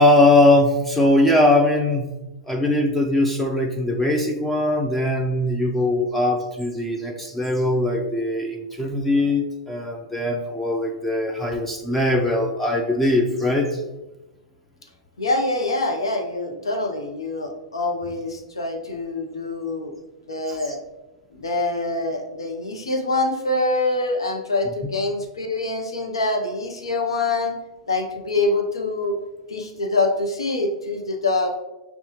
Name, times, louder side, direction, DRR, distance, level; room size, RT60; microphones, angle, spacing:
voice 1, 0.0-2.1 2.5-13.8 20.5-20.6, left 1 dB, 5° left, 1 dB, 0.4 m, -20 dB
voice 2, 15.2-19.9 20.3-20.8 21.3-27.6 27.9-29.1 29.5-31.6, left 2 dB, 85° left, 3 dB, 0.6 m, -25 dB
5.4 x 2.3 x 2.9 m, 1.0 s
hypercardioid pair, 105°, 3 cm